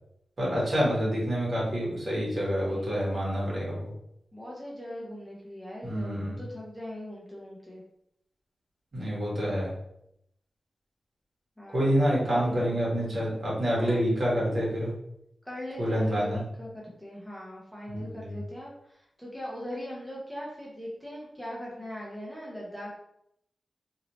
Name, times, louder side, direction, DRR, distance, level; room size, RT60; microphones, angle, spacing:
voice 1, 0.4-3.9 5.8-6.4 8.9-9.7 11.7-14.9 15.8-16.4 17.9-18.4, equal, 45° right, -6 dB, 1.5 m, -27 dB
voice 2, 2.7-3.2 4.3-7.8 11.6-12.8 13.7-14.1 15.4-22.9, left 1 dB, 5° left, -5 dB, 0.7 m, -40 dB
2.9 x 2.7 x 3.0 m, 0.77 s
wide cardioid pair, 140°, 0 cm